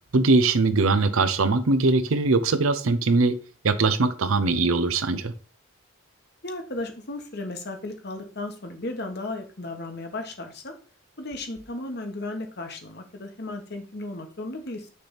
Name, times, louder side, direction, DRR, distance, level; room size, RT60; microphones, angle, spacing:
voice 1, 0.1-3.4 3.6-5.3, right 3 dB, 80° right, 11 dB, 0.7 m, -21 dB
voice 2, 6.4-10.7 11.2-14.9, left 2 dB, 50° left, 5 dB, 1.3 m, -35 dB
6.5 x 3.5 x 5.8 m, 0.37 s
head